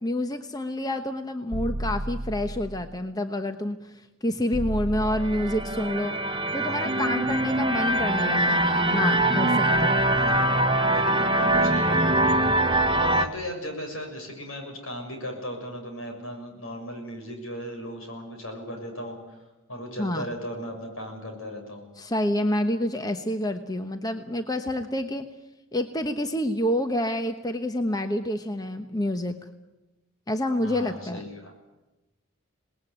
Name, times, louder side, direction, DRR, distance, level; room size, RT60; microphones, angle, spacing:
voice 1, 0.0-6.2 6.5-10.0 20.0-20.2 22.0-25.3 25.7-29.4 30.3-31.2, left 1 dB, 15° left, 7 dB, 1.0 m, -28 dB
sound 1, 1.5-3.0 4.5-6.0, right 1 dB, 75° right, 1.0 m, -33 dB
sound 2, 5.1-13.3, right 1 dB, 25° right, 1.2 m, -23 dB
voice 2, 6.5-7.0 10.1-10.5 10.9-12.3 13.0-21.9 30.6-31.5, equal, 75° left, 3 dB, 7.0 m, -37 dB
26.5 x 19.5 x 9.3 m, 1.0 s
head